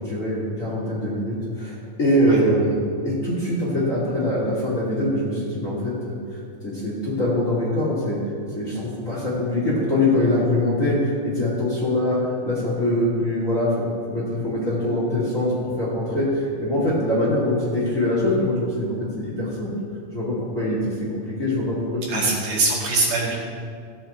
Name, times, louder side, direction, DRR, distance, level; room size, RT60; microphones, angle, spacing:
voice 1, 0.0-2.8 3.0-8.2 8.5-13.7 14.1-19.7 20.1-22.3, left 1 dB, 25° left, -6 dB, 2.5 m, -23 dB
voice 2, 22.1-23.4, right 3 dB, 65° right, -5 dB, 3.7 m, -22 dB
16.5 x 7.5 x 4.4 m, 2.2 s
omnidirectional pair, 4.1 m